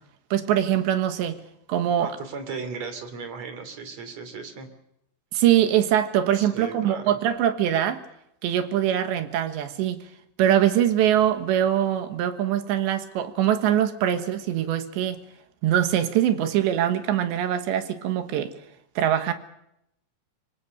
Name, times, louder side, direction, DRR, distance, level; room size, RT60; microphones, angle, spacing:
voice 1, 0.3-1.4 1.7-2.2 5.3-8.0 8.4-10.0 10.4-15.2 15.6-18.5 19.0-19.3, right 11 dB, 70° right, 3.3 m, -23 dB
voice 2, 2.0-4.7 6.3-7.2, right 5 dB, 40° right, 3.4 m, -36 dB
25.5 x 23.5 x 6.8 m
omnidirectional pair, 5.7 m